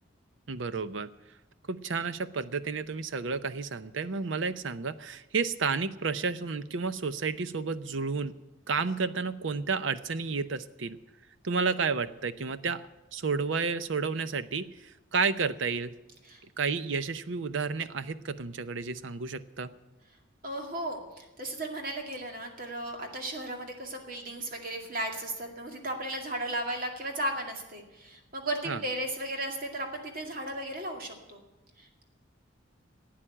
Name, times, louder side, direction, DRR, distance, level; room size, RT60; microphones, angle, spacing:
voice 1, 0.5-1.1 1.7-8.3 8.7-11.0 11.4-12.8 13.1-15.9 16.6-19.7 28.7-28.8, right 4 dB, 75° right, 13 dB, 0.7 m, -31 dB
voice 2, 20.4-31.4 31.8-32.0, right 1 dB, 45° right, 3 dB, 2.2 m, -35 dB
12.5 x 8.8 x 9.9 m, 1.0 s
head